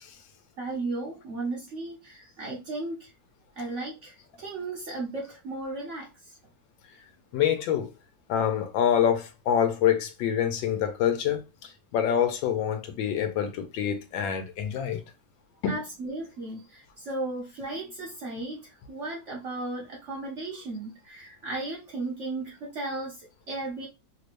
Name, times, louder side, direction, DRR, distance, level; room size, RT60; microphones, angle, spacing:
voice 1, 0.6-3.1 3.6-6.3 15.7-23.9, right 2 dB, 55° right, 0.9 m, -35 dB
voice 2, 7.3-7.9 8.3-15.0 15.6-15.8, left 9 dB, 80° left, 1.4 m, -26 dB
3.3 x 3.2 x 2.5 m
omnidirectional pair, 2.1 m